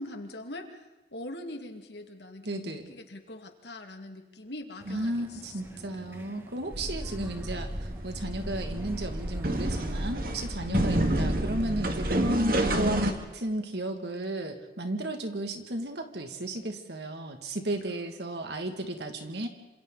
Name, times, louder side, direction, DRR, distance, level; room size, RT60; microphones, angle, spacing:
voice 1, 0.0-5.8 10.6-11.1, left 1 dB, 70° left, 5 dB, 2.3 m, -42 dB
voice 2, 2.4-2.9 4.9-19.5, right 1 dB, 70° right, 5 dB, 2.3 m, -34 dB
sound 1, 4.8-10.1, equal, 15° right, 1.3 m, -46 dB
sound 2, 6.7-13.1, right 1 dB, 55° right, 2.0 m, -29 dB
27.0 x 26.5 x 4.1 m, 1.1 s
head